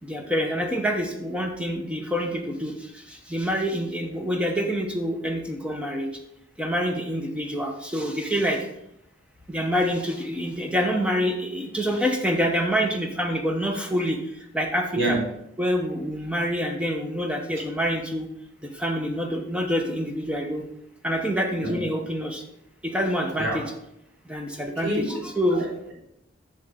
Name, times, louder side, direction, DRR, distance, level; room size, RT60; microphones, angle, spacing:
voice 1, 0.0-6.1 6.6-8.7 9.5-14.2 14.5-15.2 15.6-18.3 18.6-20.6 21.0-22.4 22.8-23.7 24.3-25.7, equal, 5° right, 3 dB, 0.9 m, -26 dB
voice 2, 24.8-25.2 25.5-25.9, right 1 dB, 75° right, -4 dB, 3.2 m, -27 dB
7.6 x 6.8 x 3.8 m, 0.79 s
head